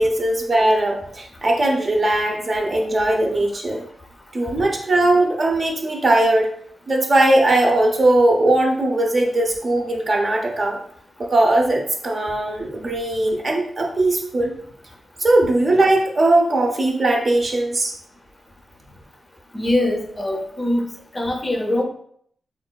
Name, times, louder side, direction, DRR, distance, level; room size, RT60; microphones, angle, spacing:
voice 1, 0.0-3.8 4.3-6.5 6.9-10.8 11.2-14.5 15.2-17.9, right 1 dB, 40° right, 1 dB, 0.5 m, -19 dB
voice 2, 19.5-20.8 21.1-21.8, left 1 dB, 20° left, 2 dB, 0.5 m, -22 dB
3.7 x 2.2 x 2.2 m, 0.64 s
wide cardioid pair, 115°, 0 cm